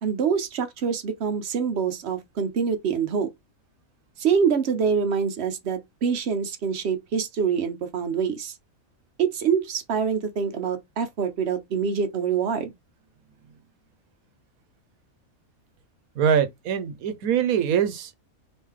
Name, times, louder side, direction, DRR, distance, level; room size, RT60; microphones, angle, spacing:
voice 1, 0.0-3.3 4.2-8.5 9.2-12.7, right 6 dB, 55° right, 0.9 m, -25 dB
voice 2, 16.2-18.1, right 8 dB, 85° right, 1.2 m, -23 dB
3.2 x 3.0 x 3.6 m
omnidirectional pair, 1.5 m